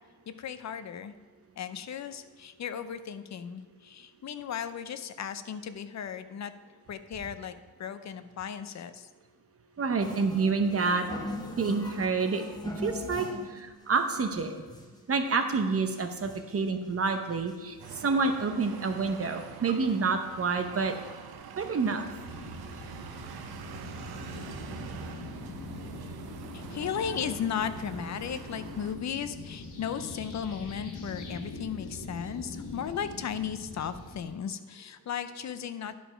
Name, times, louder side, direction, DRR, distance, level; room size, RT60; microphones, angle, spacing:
voice 1, 0.3-1.1 1.6-6.5 6.9-9.1 26.5-36.0, left 8 dB, 45° left, 11 dB, 0.5 m, -36 dB
voice 2, 9.8-11.1 11.6-12.4 12.8-14.5 15.1-17.8 18.0-20.9 21.6-22.1, right 4 dB, 35° right, 6 dB, 0.8 m, -28 dB
sound 1, 10.0-13.6 14.0-14.1 14.3-15.0 15.5-15.6 15.8-16.6 17.1-17.2 17.5-18.1 18.6-18.7 18.9-19.0, left 1 dB, 10° left, 0.9 m, -40 dB
sound 2, 17.8-29.0, right 7 dB, 70° right, 0.8 m, -45 dB
sound 3, 22.1-34.3, left 2 dB, 85° left, 1.6 m, -42 dB
11.0 x 5.1 x 4.9 m, 1.4 s
wide cardioid pair, 140°, 39 cm